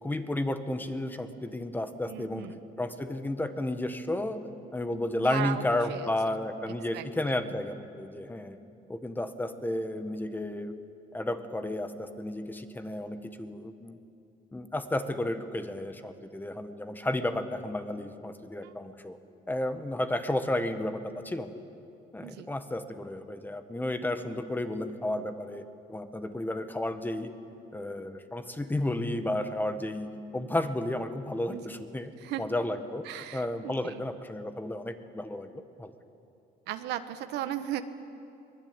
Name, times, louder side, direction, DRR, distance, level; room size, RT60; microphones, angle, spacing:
voice 1, 0.0-4.4 4.7-8.6 8.9-10.8 11.1-14.0 14.5-19.2 19.5-21.5 22.1-27.3 27.7-32.1 32.4-35.9, left 1 dB, 10° left, 8 dB, 1.5 m, -32 dB
voice 2, 2.1-2.6 5.2-6.0 6.9-7.0 18.6-18.7 22.2-22.5 31.5-31.8 32.2-32.4 33.0-34.0 36.7-37.8, right 12 dB, 85° right, 9 dB, 1.3 m, -36 dB
23.5 x 21.0 x 9.0 m, 2.7 s
cardioid pair, 110°, 17 cm